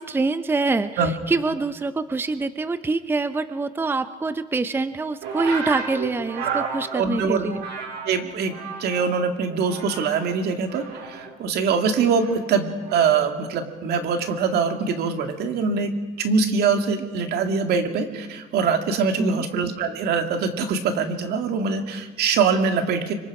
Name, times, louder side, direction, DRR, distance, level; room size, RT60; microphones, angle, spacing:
voice 1, 0.0-7.6 19.2-19.4, right 3 dB, 15° right, 12 dB, 0.6 m, -25 dB
sound 1, 5.2-9.1 9.4-10.3 10.6-13.3 14.2-14.5, right 5 dB, 85° right, 4.5 m, -34 dB
voice 2, 6.5-7.5 8.0-8.5 8.8-15.9 16.2-23.1, right 5 dB, 70° right, 5 dB, 2.2 m, -23 dB
25.5 x 24.0 x 4.9 m, 1.3 s
cardioid pair, 110°, 17 cm